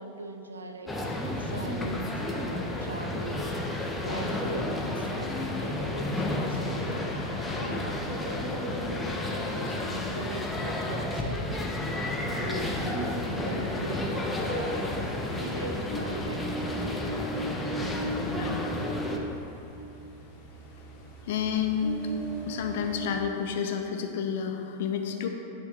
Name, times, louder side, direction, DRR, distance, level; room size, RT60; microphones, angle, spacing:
voice 1, 0.0-3.6 4.0-6.9 7.5-11.5 12.3-15.0 15.4-16.9, right 3 dB, 75° right, 5 dB, 0.4 m, -40 dB
sound 1, 0.9-19.2, left 2 dB, 10° left, 0.6 m, -32 dB
sound 2, 1.1-17.3, left 2 dB, 70° left, 0.9 m, -46 dB
Ocean, 9.7-23.2, right 1 dB, 30° left, 1.1 m, -40 dB
voice 2, 12.4-12.8 18.3-18.7 21.2-22.1 22.5-25.3, left 7 dB, 55° left, 4 dB, 0.5 m, -30 dB
9.8 x 3.4 x 3.2 m, 2.8 s
figure-of-eight pair, 90°, 0 cm